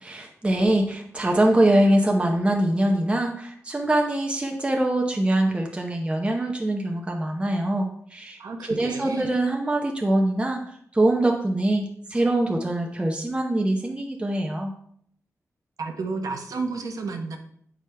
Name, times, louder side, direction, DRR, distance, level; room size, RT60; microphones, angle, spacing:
voice 1, 0.0-8.4 8.8-10.6 10.9-14.7, right 1 dB, 20° right, 1 dB, 0.7 m, -23 dB
voice 2, 8.4-9.3 15.8-17.4, right 4 dB, 90° right, 4 dB, 0.9 m, -31 dB
8.1 x 4.9 x 3.3 m, 0.66 s
wide cardioid pair, 105°, 6 cm